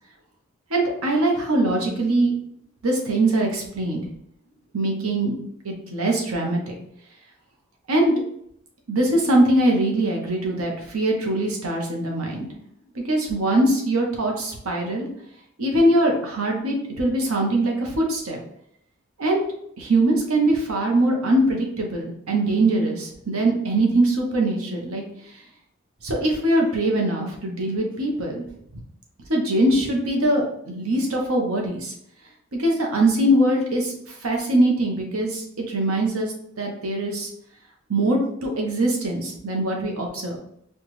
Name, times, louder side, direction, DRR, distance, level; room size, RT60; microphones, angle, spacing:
voice 1, 0.7-2.3 2.8-4.0 4.7-5.3 5.6-6.7 7.9-8.1 8.9-12.5 12.9-15.1 15.6-18.4 19.2-19.4 19.8-25.0 26.0-28.4 29.3-31.9 32.5-37.3 37.9-40.4, right 1 dB, 80° right, 0 dB, 1.0 m, -22 dB
4.4 x 2.4 x 3.1 m, 0.71 s
head